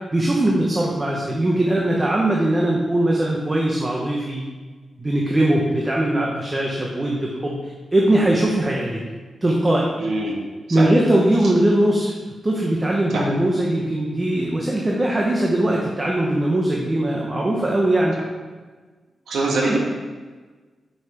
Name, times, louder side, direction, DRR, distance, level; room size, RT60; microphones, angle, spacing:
voice 1, 0.1-4.4 5.0-9.0 9.4-9.9 10.7-12.1 12.4-18.1 19.6-19.8, right 1 dB, 20° right, -2 dB, 0.8 m, -20 dB
voice 2, 10.0-10.4 10.7-11.0 13.1-13.2 19.3-19.8, right 2 dB, 90° right, -2 dB, 1.6 m, -23 dB
6.1 x 5.6 x 4.5 m, 1.4 s
wide cardioid pair, 150°, 0 cm